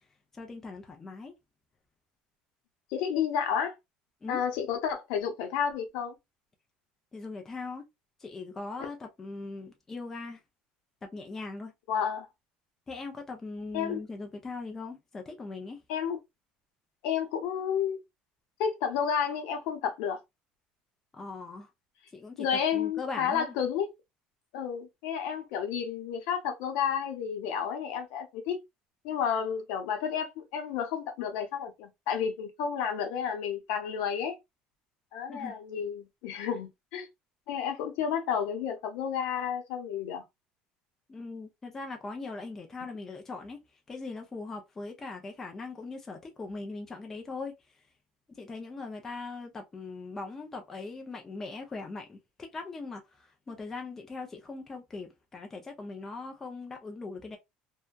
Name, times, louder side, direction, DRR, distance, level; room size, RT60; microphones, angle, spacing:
voice 1, 0.3-1.3 4.2-4.4 7.1-7.8 8.2-10.4 11.1-11.7 12.9-15.8 21.1-21.7 22.1-23.5 35.3-35.5 41.1-43.6 43.9-47.5 48.4-57.4, left 3 dB, 15° left, 0.4 m, -40 dB
voice 2, 2.9-3.7 4.3-6.2 11.9-12.3 13.7-14.0 15.9-16.2 17.0-18.0 18.6-20.2 22.4-23.9 24.5-28.6 29.0-34.4 35.1-37.1 37.5-40.2, left 7 dB, 70° left, 0.8 m, -31 dB
2.7 x 2.2 x 2.2 m
cardioid pair, 180°, 3 cm